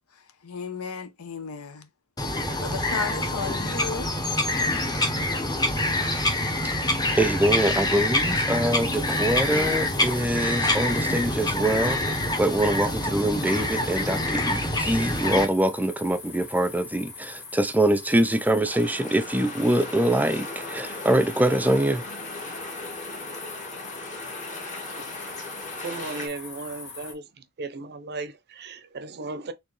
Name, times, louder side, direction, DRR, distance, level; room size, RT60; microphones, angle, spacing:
voice 1, 0.4-1.9 2.6-4.2, left 5 dB, 70° left, 0.8 m, -34 dB
Bird vocalization bird call bird song, 2.2-15.4, left 1 dB, 20° left, 0.9 m, -26 dB
voice 2, 6.9-22.0, right 1 dB, 5° right, 0.5 m, -24 dB
sound 1, 8.5-27.1, left 4 dB, 55° left, 1.9 m, -43 dB
sound 2, 18.6-26.3, left 2 dB, 35° left, 1.4 m, -37 dB
voice 3, 25.8-27.3 27.6-29.5, right 3 dB, 50° right, 0.6 m, -36 dB
4.3 x 3.3 x 3.1 m
head